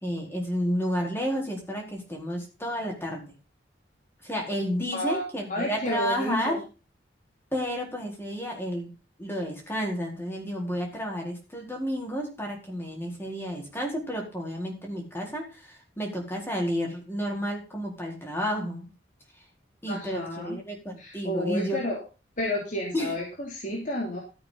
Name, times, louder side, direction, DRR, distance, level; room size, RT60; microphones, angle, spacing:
voice 1, 0.0-3.3 4.2-6.6 7.5-8.9 9.2-18.9 19.8-21.8 22.9-23.1, equal, 15° left, 0 dB, 4.5 m, -31 dB
voice 2, 4.9-6.6 19.9-20.6 21.0-22.0 22.4-24.2, left 1 dB, 45° left, -2 dB, 3.3 m, -31 dB
14.0 x 8.7 x 4.2 m, 0.31 s
head